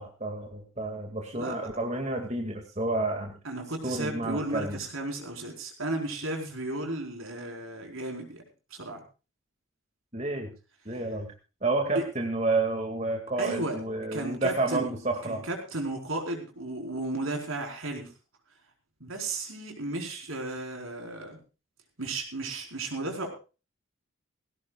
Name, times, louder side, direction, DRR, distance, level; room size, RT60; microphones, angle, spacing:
voice 1, 0.0-3.3 3.8-4.8 10.1-10.5 10.9-11.3 11.6-15.4, right 2 dB, 30° right, 2 dB, 2.3 m, -30 dB
voice 2, 3.4-8.4 8.7-9.0 10.9-11.0 11.9-12.0 13.4-13.8 14.1-14.9 15.2-18.1 19.0-21.4 22.0-23.3, right 2 dB, 75° right, 2 dB, 4.7 m, -34 dB
19.5 x 17.0 x 2.4 m, 0.33 s
head